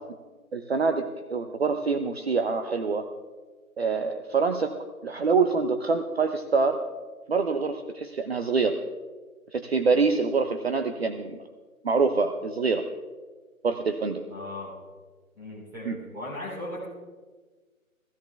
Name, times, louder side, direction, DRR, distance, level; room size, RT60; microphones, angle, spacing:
voice 1, 0.5-3.0 3.8-4.8 5.0-6.8 7.3-8.8 9.5-11.4 11.8-12.8 13.6-14.2 15.9-16.0, right 4 dB, 45° right, 7 dB, 0.8 m, -25 dB
voice 2, 14.3-14.8 15.3-16.9, left 1 dB, 5° right, -7 dB, 2.9 m, -37 dB
16.5 x 16.0 x 3.4 m, 1.4 s
figure-of-eight pair, 165°, 43 cm